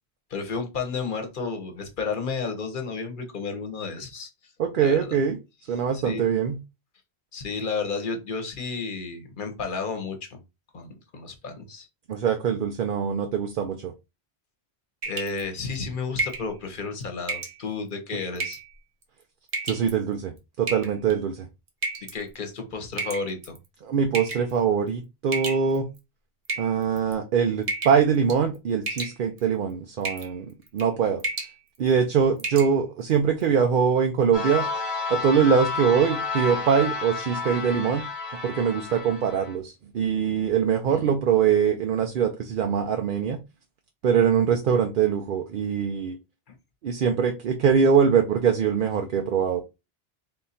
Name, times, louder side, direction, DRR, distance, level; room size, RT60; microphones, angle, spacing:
voice 1, 0.3-4.5 4.8-5.1 5.9-6.3 7.3-10.4 10.7-11.9 15.1-18.6 22.1-23.6 40.9-41.1 46.5-46.6, left 4 dB, 55° left, 6 dB, 1.1 m, -32 dB
voice 2, 4.6-5.4 5.7-6.6 12.1-13.9 19.6-21.5 23.8-25.9 26.6-31.2 31.8-34.7 35.1-38.0 38.4-43.4 44.0-46.2 46.8-49.6, right 7 dB, 60° right, 5 dB, 0.7 m, -23 dB
sound 1, 15.0-15.4 16.2-16.5 17.3-17.6 18.4-18.7 19.5-19.9 20.7-21.1 21.8-22.2 23.0-23.6 24.1-24.5 25.3-26.0 26.5-27.1 27.7-28.0 28.3-28.6 28.9-29.4 30.0-30.3 30.7-30.9 31.2-31.5 31.9-32.0 32.4-32.7, right 3 dB, 45° right, 0.9 m, -31 dB
sound 2, 34.3-39.5, left 4 dB, 30° left, 1.1 m, -31 dB
3.7 x 2.6 x 4.1 m, 0.25 s
omnidirectional pair, 1.1 m